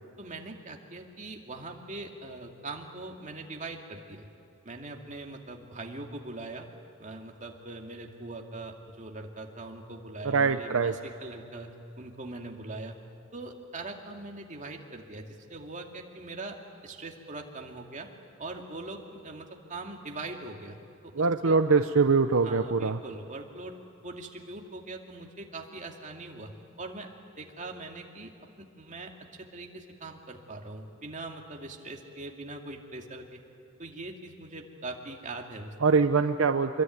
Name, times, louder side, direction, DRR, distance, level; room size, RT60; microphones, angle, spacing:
voice 1, 0.2-4.3 4.6-6.7 7.0-13.0 13.3-16.6 16.8-18.1 18.4-20.8 21.0-21.6 22.4-23.8 24.0-26.5 26.8-28.3 28.6-33.4 33.8-35.7, right 2 dB, 35° right, 2 dB, 2.5 m, -41 dB
voice 2, 10.2-10.9 21.2-23.0 35.8-36.8, right 4 dB, 70° right, 8 dB, 0.7 m, -23 dB
26.0 x 22.5 x 9.5 m, 2.8 s
head